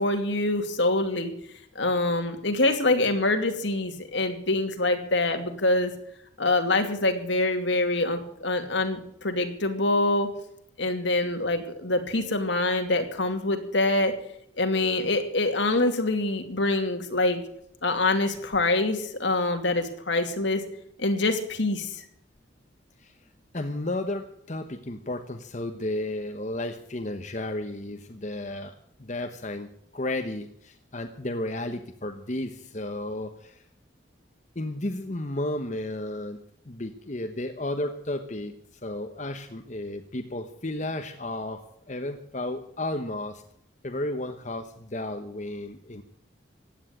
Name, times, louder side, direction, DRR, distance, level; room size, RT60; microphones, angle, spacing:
voice 1, 0.0-1.3 1.7-5.9 6.4-10.3 10.8-14.1 14.6-17.4 17.8-20.6 21.0-22.0, left 2 dB, 70° left, 6 dB, 2.6 m, -25 dB
voice 2, 23.5-28.7 29.0-33.6 34.5-36.4 36.7-38.5 38.8-43.4 43.8-46.0, left 1 dB, 40° left, 6 dB, 1.1 m, -33 dB
16.0 x 10.0 x 8.8 m, 0.71 s
head